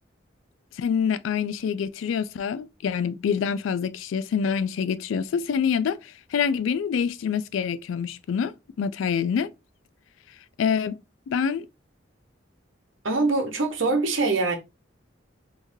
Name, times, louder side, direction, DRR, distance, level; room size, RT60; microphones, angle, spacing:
voice 1, 0.8-9.5 10.6-11.0 11.3-11.7, left 7 dB, 80° left, 0.3 m, -26 dB
voice 2, 13.0-14.5, right 3 dB, 75° right, 0.9 m, -23 dB
3.5 x 3.1 x 2.6 m
head